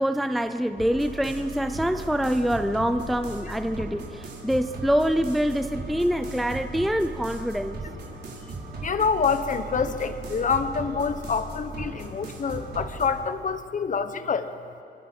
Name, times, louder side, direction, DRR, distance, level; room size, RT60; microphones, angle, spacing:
voice 1, 0.0-7.8, equal, ahead, 9 dB, 0.5 m, -25 dB
sound 1, 0.8-13.1, right 2 dB, 60° right, 4.7 m, -37 dB
voice 2, 8.8-14.5, left 5 dB, 40° left, 10 dB, 1.2 m, -26 dB
27.5 x 24.5 x 5.5 m, 2.5 s
wide cardioid pair, 135°, 19 cm